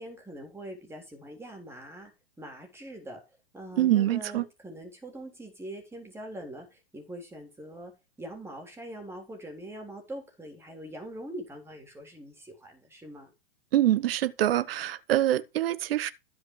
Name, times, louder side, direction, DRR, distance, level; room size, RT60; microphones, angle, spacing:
voice 1, 0.0-2.1 2.4-3.2 3.5-7.9 8.2-13.3, right 1 dB, 10° right, 3.6 m, -43 dB
voice 2, 3.8-4.4 13.7-16.1, right 13 dB, 70° right, 1.0 m, -25 dB
14.5 x 5.3 x 4.7 m
hypercardioid pair, 135°, 31 cm